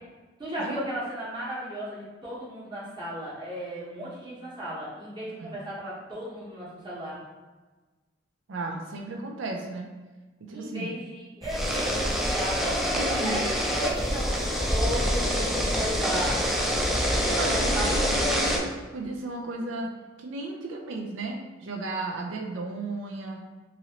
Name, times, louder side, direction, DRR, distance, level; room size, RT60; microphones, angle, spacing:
voice 1, 0.4-7.2 10.5-14.4 14.7-16.5 17.1-18.7, equal, 25° right, -8 dB, 1.0 m, -35 dB
voice 2, 8.5-9.9 10.4-10.9 12.9-13.5 17.3-19.9 20.2-23.4, right 2 dB, 80° right, 1 dB, 0.5 m, -34 dB
sound 1, 11.4-18.6, equal, ahead, 0.3 m, -26 dB
3.0 x 2.6 x 2.7 m, 1.3 s
head